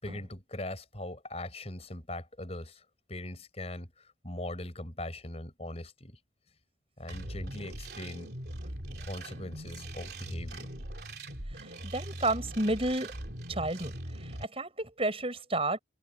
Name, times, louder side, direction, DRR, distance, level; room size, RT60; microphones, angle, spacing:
voice 1, 0.0-2.8 3.1-6.2 7.0-8.3 9.0-10.7, left 1 dB, 35° left, 5.4 m, -40 dB
sound 1, 7.1-14.5, right 1 dB, 55° right, 3.4 m, -41 dB
voice 2, 11.8-13.1 13.5-13.9 14.2-15.8, right 2 dB, 30° right, 7.7 m, -31 dB
head